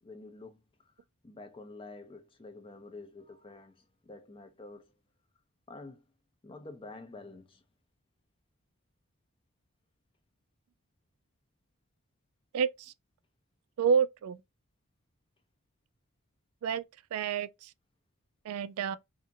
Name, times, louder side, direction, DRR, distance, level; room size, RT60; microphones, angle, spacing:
voice 1, 0.0-0.6 1.2-3.7 4.0-4.9 5.7-6.0 6.4-7.6, left 2 dB, 25° left, 0.4 m, -48 dB
voice 2, 12.5-12.9 13.8-14.4 16.6-16.8 17.1-17.7 18.4-19.0, right 6 dB, 75° right, 0.3 m, -29 dB
2.7 x 2.5 x 2.5 m
head